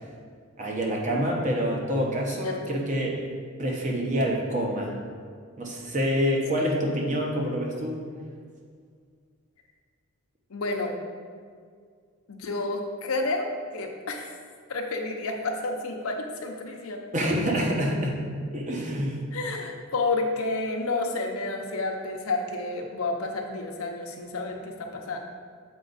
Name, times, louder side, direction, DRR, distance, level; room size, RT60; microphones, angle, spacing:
voice 1, 0.6-3.2 3.6-5.0 5.6-8.0 17.1-18.2 18.5-19.3, equal, 35° right, -1 dB, 1.0 m, -27 dB
voice 2, 2.4-2.8 6.6-6.7 10.5-10.9 12.3-14.3 14.7-17.0 19.3-25.2, left 2 dB, 80° left, 2 dB, 0.7 m, -30 dB
7.0 x 4.5 x 4.0 m, 2.1 s
head